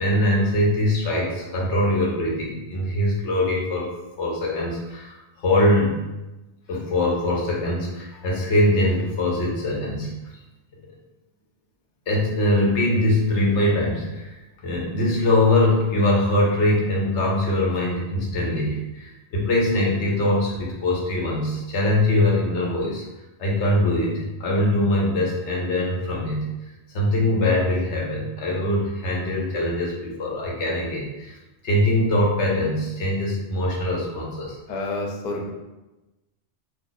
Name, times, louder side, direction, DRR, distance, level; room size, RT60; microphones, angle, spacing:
voice 1, 0.0-6.0 6.7-10.1 12.1-23.0 23.4-26.5 26.9-31.4 31.6-34.6, left 1 dB, 80° left, -3 dB, 1.1 m, -22 dB
voice 2, 34.7-35.5, left 2 dB, 50° left, 0 dB, 0.5 m, -29 dB
2.4 x 2.4 x 3.9 m, 1.0 s
omnidirectional pair, 1.2 m